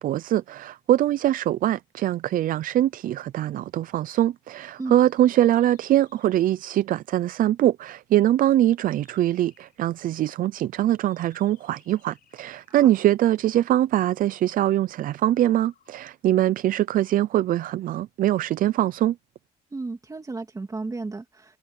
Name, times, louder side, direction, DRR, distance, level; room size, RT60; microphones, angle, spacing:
voice 1, 0.0-19.2, right 13 dB, 55° right, 0.5 m, -23 dB
sound 1, 4.7-6.8 8.8-9.9 10.9-13.0 15.1-16.0, left 10 dB, 60° left, 7.8 m, -64 dB
voice 2, 19.7-21.6, right 3 dB, 20° right, 2.9 m, -34 dB
cardioid pair, 110°, 17 cm